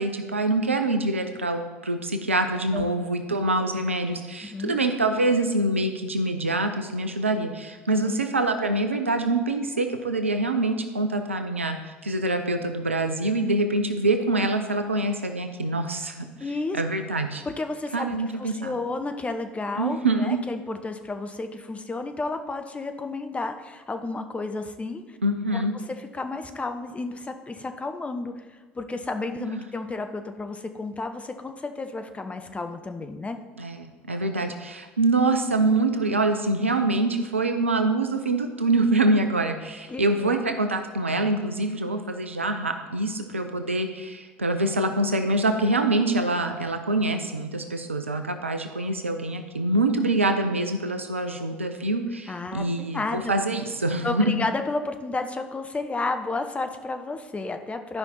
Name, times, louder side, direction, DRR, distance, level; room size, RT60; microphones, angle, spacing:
voice 1, 0.0-16.3 16.7-17.4 17.9-18.8 19.8-20.4 25.2-25.7 29.5-29.6 33.6-54.4, right 2 dB, 90° right, 7 dB, 0.6 m, -25 dB
voice 2, 4.4-4.8 8.0-8.2 16.4-16.8 17.4-25.2 25.5-33.4 39.9-40.4 52.3-53.3 54.0-58.0, left 3 dB, 20° left, 7 dB, 0.9 m, -32 dB
12.0 x 5.5 x 4.2 m, 1.3 s
figure-of-eight pair, 65°, 7 cm